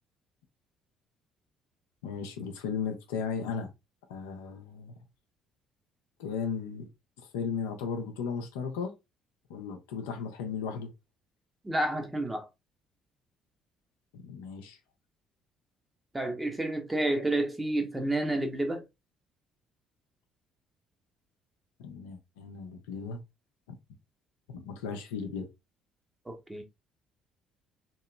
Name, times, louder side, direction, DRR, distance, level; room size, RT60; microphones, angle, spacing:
voice 1, 2.0-3.7 4.1-4.9 6.2-6.9 7.2-8.9 9.5-10.9 14.1-14.8 21.8-23.2 24.5-25.5, left 6 dB, 80° left, 0.5 m, -36 dB
voice 2, 11.6-12.5 16.1-18.8 26.3-26.6, right 1 dB, 15° right, 0.9 m, -30 dB
2.9 x 2.8 x 2.3 m
hypercardioid pair, 50°, 0 cm